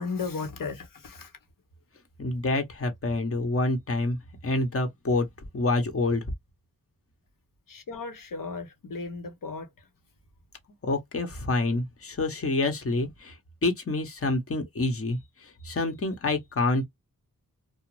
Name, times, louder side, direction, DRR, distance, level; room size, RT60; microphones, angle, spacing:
voice 1, 0.0-1.3 7.7-9.9, left 4 dB, 70° left, 1.0 m, -35 dB
voice 2, 2.2-6.3 10.8-13.4 13.6-16.9, left 2 dB, 40° left, 1.0 m, -27 dB
2.5 x 2.1 x 3.1 m
cardioid pair, 55°, 34 cm